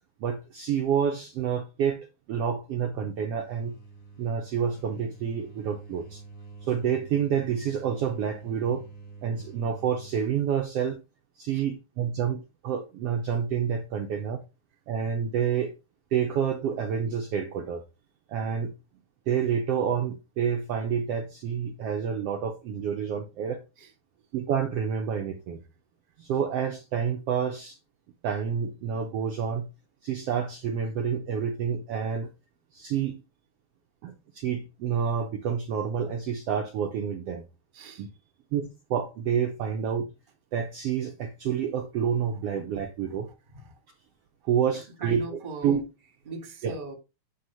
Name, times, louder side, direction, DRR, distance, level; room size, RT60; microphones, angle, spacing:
voice 1, 0.2-3.8 4.2-6.2 6.6-8.8 9.2-11.0 11.4-14.4 14.9-15.7 16.1-17.8 18.3-18.7 19.3-23.6 24.3-25.6 26.2-27.8 28.2-29.7 30.0-32.3 32.7-33.2 34.0-37.4 38.0-38.1 38.5-40.1 40.5-43.3 44.4-45.8 46.6-46.7, right 7 dB, 65° right, 1.6 m, -28 dB
sound 1, 2.7-10.5, right 4 dB, 35° left, 2.7 m, -47 dB
voice 2, 37.7-38.0 43.1-43.7 45.0-45.9 46.2-47.0, right 3 dB, 20° right, 1.4 m, -39 dB
9.3 x 3.6 x 5.6 m
omnidirectional pair, 3.5 m